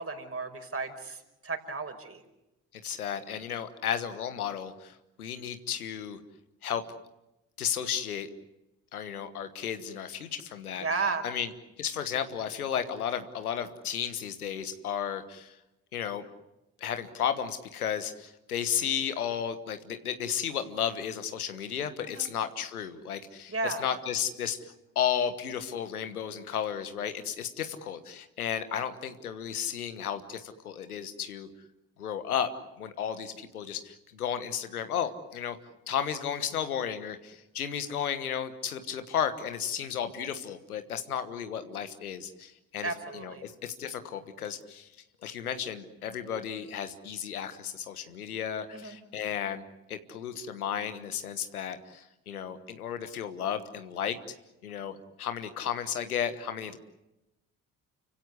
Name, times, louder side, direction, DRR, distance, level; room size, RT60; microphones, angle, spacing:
voice 1, 0.0-2.2 10.8-11.3 22.0-22.3 23.5-23.8 42.8-43.4 48.7-49.0, right 4 dB, 30° right, 6 dB, 5.3 m, -34 dB
voice 2, 2.8-6.2 6.6-6.9 7.6-8.3 8.9-10.8 11.2-11.5 11.8-15.6 15.9-16.2 16.8-31.5 32.0-32.5 32.8-35.6 35.9-44.9 45.2-49.6 49.9-54.2 54.6-56.8, left 8 dB, 90° left, 10 dB, 1.4 m, -33 dB
30.0 x 16.5 x 9.7 m, 0.94 s
hypercardioid pair, 45°, 43 cm